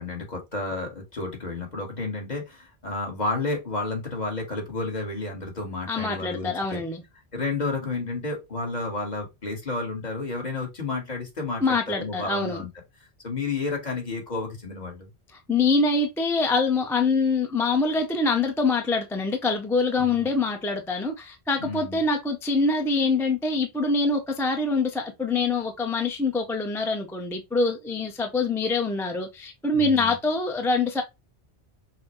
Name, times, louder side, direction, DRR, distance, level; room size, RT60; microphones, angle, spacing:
voice 1, 0.0-6.8 7.3-12.7 13.2-15.1 20.0-20.3 21.6-22.0 29.7-30.2, left 3 dB, 40° left, 1.4 m, -31 dB
voice 2, 5.9-7.0 11.6-12.6 15.5-31.0, left 3 dB, 5° left, 0.4 m, -25 dB
5.7 x 2.1 x 3.0 m
omnidirectional pair, 1.1 m